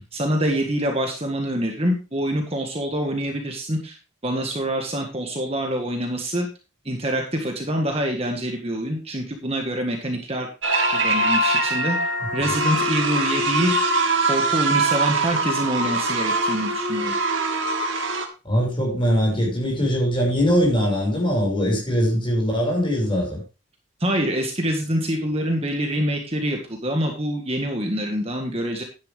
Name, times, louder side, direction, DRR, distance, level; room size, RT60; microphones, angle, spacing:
voice 1, 0.1-4.0 4.2-6.5 6.8-10.5 10.9-12.0 12.3-13.7 14.3-17.1 24.0-28.8, right 1 dB, 30° right, 1.7 m, -25 dB
sound 1, 10.6-18.3, right 2 dB, 65° right, 2.2 m, -22 dB
voice 2, 18.4-23.4, equal, 25° left, 5.7 m, -21 dB
11.5 x 10.0 x 3.5 m
head